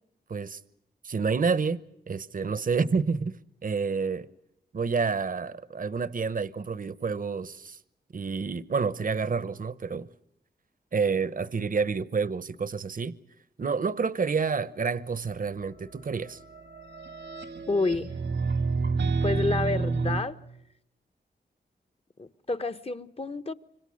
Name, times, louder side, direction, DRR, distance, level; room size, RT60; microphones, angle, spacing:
voice 1, 0.3-0.6 1.0-1.8 2.1-3.4 3.6-4.3 4.7-7.8 8.1-10.1 10.9-13.1 13.6-16.4, right 5 dB, 50° right, 0.9 m, -29 dB
sound 1, 16.2-20.2, right 4 dB, 90° right, 1.8 m, -29 dB
voice 2, 17.7-18.1 19.2-20.4 22.2-23.5, left 3 dB, 35° left, 1.0 m, -29 dB
26.0 x 25.0 x 6.4 m
cardioid pair, 60°, 18 cm